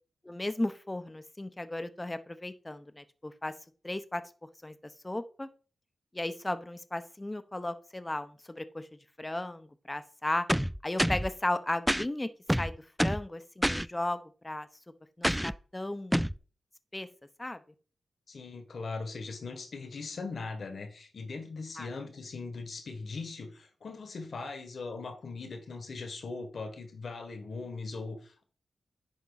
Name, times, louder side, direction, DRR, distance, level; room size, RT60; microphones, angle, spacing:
voice 1, 0.2-3.5 3.8-4.2 4.6-4.8 5.0-5.5 6.1-8.9 9.2-10.5 10.8-12.3 12.6-14.7 15.2-16.2 16.9-17.1 17.4-17.6 21.8-21.9, left 1 dB, 20° left, 11 dB, 0.8 m, -35 dB
sound 1, 10.5-11.3 11.9-12.1 12.5-13.3 13.6-13.9 15.2-15.6 16.1-16.4, equal, 5° right, 0.3 m, -27 dB
voice 2, 18.3-28.4, left 3 dB, 65° left, 7 dB, 1.6 m, -40 dB
10.5 x 3.9 x 4.0 m, 0.39 s
cardioid pair, 50°, 0 cm